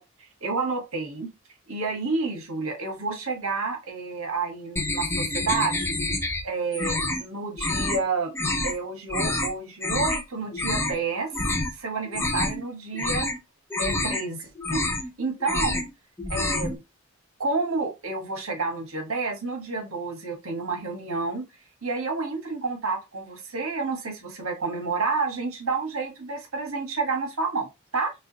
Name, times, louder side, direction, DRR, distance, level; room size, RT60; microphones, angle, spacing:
voice 1, 0.4-1.3 1.7-5.9 6.4-8.3 8.6-13.3 13.8-14.8 15.2-15.8 16.3-16.8 17.4-21.5 21.8-28.1, right 4 dB, 70° right, 1.3 m, -29 dB
sound 1, 4.8-6.4 6.7-7.2 7.6-8.0 8.3-8.7 9.1-9.5 9.8-10.2 10.5-11.0 11.3-11.7 12.0-12.6 12.9-13.4 13.7-14.2 14.6-15.1 15.4-15.9 16.2-16.8, left 2 dB, 10° left, 0.6 m, -27 dB
4.8 x 3.3 x 2.8 m
head